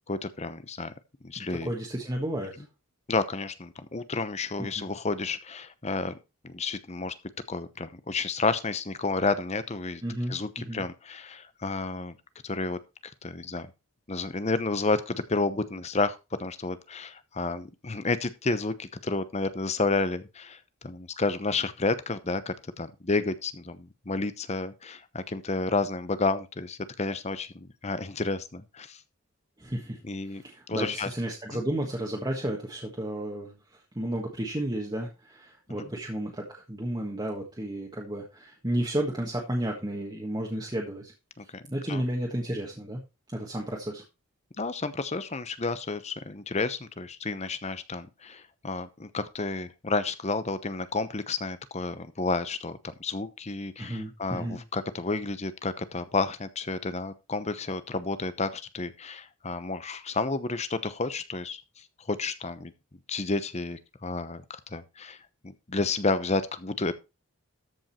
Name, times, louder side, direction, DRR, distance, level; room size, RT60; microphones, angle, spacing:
voice 1, 0.1-0.9 1.2-1.7 3.1-6.2 6.4-7.1 7.5-10.0 10.3-12.2 12.4-12.8 13.2-13.7 14.1-29.0 30.0-30.4 30.7-31.1 31.5-31.6 41.4-42.0 44.6-61.6 62.1-62.7 63.1-65.2 65.4-67.0, left 3 dB, 30° left, 13 dB, 0.8 m, -31 dB
voice 2, 1.4-2.6 4.6-4.9 10.0-10.8 29.6-30.0 30.3-33.5 33.9-41.1 41.7-43.0 43.3-44.0 53.8-54.6, right 1 dB, 20° right, -1 dB, 1.5 m, -32 dB
13.5 x 5.3 x 4.3 m, 0.27 s
head